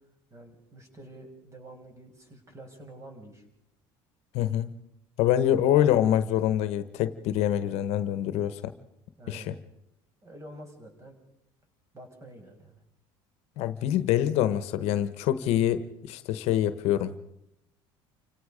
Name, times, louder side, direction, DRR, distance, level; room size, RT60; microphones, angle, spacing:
voice 1, 0.3-3.4 9.2-9.5 10.2-11.2 11.9-12.8, right 1 dB, 25° right, 4 dB, 6.1 m, -48 dB
voice 2, 4.3-4.7 5.2-8.7 9.3-9.5 13.6-17.2, left 11 dB, 70° left, 13 dB, 1.2 m, -25 dB
29.0 x 17.5 x 5.2 m, 0.82 s
supercardioid pair, 105°, 11 cm